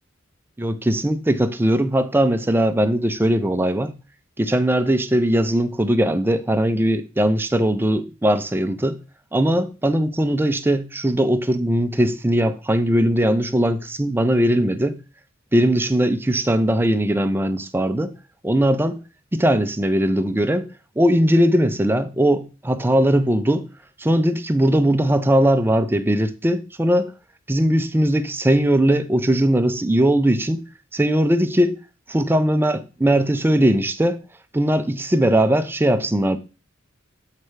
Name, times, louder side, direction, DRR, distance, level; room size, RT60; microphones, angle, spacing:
voice 1, 0.6-3.9 4.4-9.0 9.3-15.0 15.5-18.1 18.4-19.0 19.3-20.7 21.0-23.7 24.0-27.1 27.5-30.6 30.9-31.8 32.1-34.2 34.5-36.4, right 1 dB, 10° right, 0.4 m, -19 dB
7.6 x 3.2 x 4.6 m
head